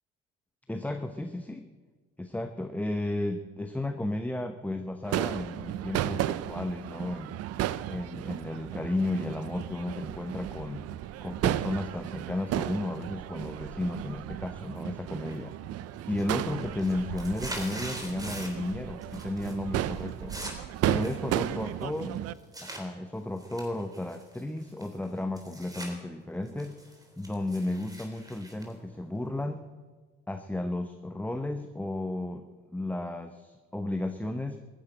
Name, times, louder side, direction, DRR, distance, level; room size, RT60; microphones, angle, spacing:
voice 1, 0.7-1.7 2.2-7.3 7.9-10.9 11.2-15.6 16.1-20.3 20.9-22.2 22.6-26.8 27.2-29.7 30.3-32.4 32.7-34.6, left 1 dB, 5° left, 7 dB, 0.9 m, -33 dB
Crowd / Fireworks, 5.1-22.3, right 13 dB, 55° right, 0.7 m, -34 dB
Paper being ripped, 15.3-15.7 16.0-18.7 19.0-19.5 19.8-22.8 23.4-25.9 26.3-29.5, right 1 dB, 10° right, 3.7 m, -43 dB
14.5 x 10.0 x 8.8 m, 1.4 s
supercardioid pair, 90°, 29 cm